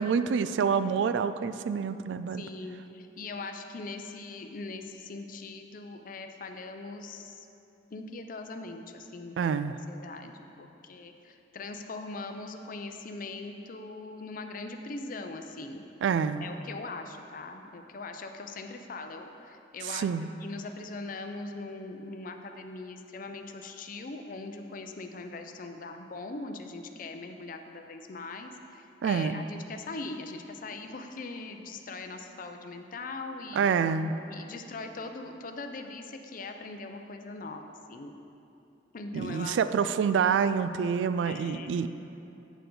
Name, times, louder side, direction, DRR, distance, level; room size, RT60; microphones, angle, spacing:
voice 1, 0.0-2.4 9.4-9.8 16.0-16.5 19.8-20.3 29.0-29.5 33.6-34.1 39.1-41.9, right 6 dB, 90° right, 12 dB, 0.3 m, -27 dB
voice 2, 2.3-7.5 7.9-9.6 9.9-15.8 16.4-20.1 20.4-33.6 34.3-37.6 37.9-38.1 38.9-39.9 41.2-41.8, left 3 dB, 50° left, 6 dB, 0.5 m, -41 dB
8.1 x 6.7 x 3.9 m, 2.8 s
head